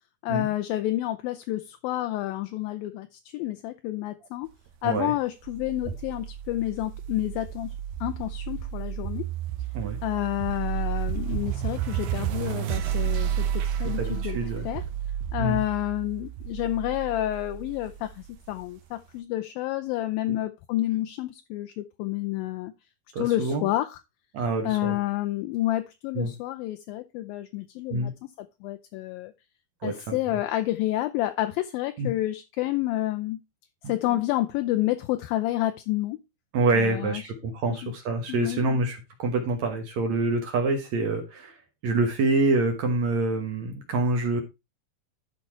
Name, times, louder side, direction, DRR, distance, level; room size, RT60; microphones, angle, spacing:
voice 1, 0.2-4.5 4.8-7.8 8.0-9.3 10.0-14.8 15.3-22.7 23.2-24.0 24.7-29.3 29.8-33.4 33.9-36.2 36.7-37.2 37.7-37.9 38.3-38.6, left 15 dB, 80° left, 2.3 m, -29 dB
sound 1, 5.5-18.6, right 10 dB, 80° right, 2.7 m, -31 dB
voice 2, 14.0-14.7 15.4-15.6 20.3-20.4 23.1-23.6 24.3-25.0 26.2-26.3 27.9-28.1 29.8-30.2 32.0-32.1 33.8-33.9 36.5-41.6 41.8-44.4, right 3 dB, 60° right, 2.1 m, -26 dB
12.5 x 4.6 x 4.3 m
omnidirectional pair, 4.4 m